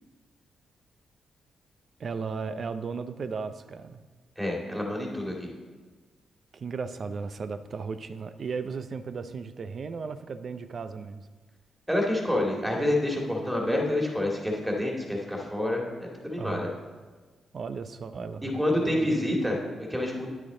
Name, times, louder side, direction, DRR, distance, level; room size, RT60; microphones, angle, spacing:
voice 1, 2.0-4.0 6.5-11.2 16.4-16.8 17.5-19.2, right 5 dB, 55° right, 11 dB, 0.5 m, -35 dB
voice 2, 4.4-5.5 11.9-16.7 18.4-20.3, left 1 dB, 10° right, -1 dB, 2.3 m, -28 dB
9.8 x 6.1 x 3.9 m, 1.4 s
hypercardioid pair, 45°, 0 cm